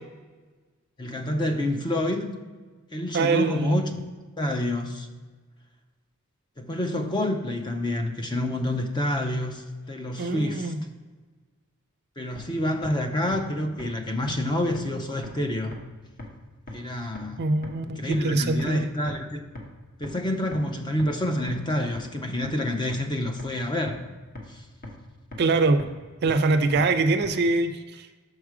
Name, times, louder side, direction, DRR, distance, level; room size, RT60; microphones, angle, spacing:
voice 1, 1.0-2.3 2.9-3.9 4.4-5.1 6.6-10.7 12.2-15.7 16.7-17.4 17.8-19.4 20.0-24.0 24.5-24.6, left 1 dB, 20° left, 5 dB, 0.5 m, -28 dB
voice 2, 3.1-3.8 10.2-10.8 17.4-18.9 25.4-25.8 26.2-28.1, right 3 dB, 45° right, 9 dB, 0.4 m, -23 dB
sound 1, 12.4-12.5 12.8-12.9 13.3-13.4 13.8-13.9 14.3-14.4 14.8-14.9 15.2-15.3 15.7-15.8 16.2-16.3 16.7-16.8 17.2-17.3 17.6-17.7 18.1-18.2 18.6-18.7 19.1-19.2 19.6-19.7 20.0-20.1 20.5-20.6 21.0-21.1 21.5-21.6 22.0-22.1 22.4-22.5 22.9-23.0 23.4-23.5 23.9-24.0 24.4-24.5 24.8-24.9 25.3-25.4 25.8-25.9 26.3-26.4 26.8-26.9 27.2-27.3, left 2 dB, 40° left, 1.1 m, -37 dB
6.4 x 4.8 x 4.8 m, 1.4 s
head